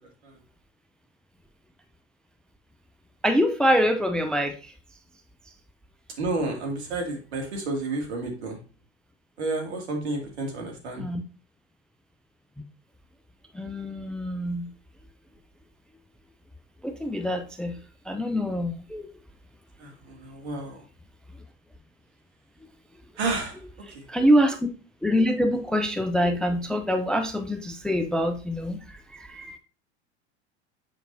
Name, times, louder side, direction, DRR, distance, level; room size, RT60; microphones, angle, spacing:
voice 1, 3.2-4.7 11.0-11.2 13.5-14.7 16.8-17.8 18.1-19.1 24.1-24.7 25.0-28.8 29.1-29.6, equal, ahead, 7 dB, 0.4 m, -25 dB
voice 2, 6.2-8.6 9.4-11.1 19.8-20.8 23.2-23.6 23.9-24.0, right 2 dB, 70° right, 1 dB, 2.4 m, -31 dB
7.4 x 5.2 x 2.7 m, 0.35 s
hypercardioid pair, 90°, 34 cm